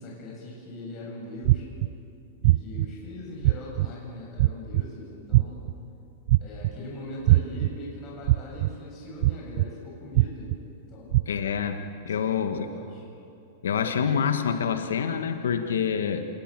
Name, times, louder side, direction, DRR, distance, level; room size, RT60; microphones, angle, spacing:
voice 1, 0.0-1.7 2.4-5.7 6.4-10.5 10.9-11.2 12.1-13.0, left 1 dB, 35° left, -3 dB, 7.3 m, -41 dB
sound 1, 1.4-1.9 2.4-2.8 3.4-3.9 4.4-4.8 5.3-5.7 6.3-6.7 7.3-7.7 8.3-8.7 9.2-9.7 10.1-10.5 11.1-11.2, right 18 dB, 60° right, 0.5 m, -20 dB
voice 2, 11.3-12.7 13.6-16.2, left 7 dB, 80° left, 7 dB, 1.6 m, -27 dB
27.5 x 20.5 x 7.7 m, 2.6 s
hypercardioid pair, 115°, 0 cm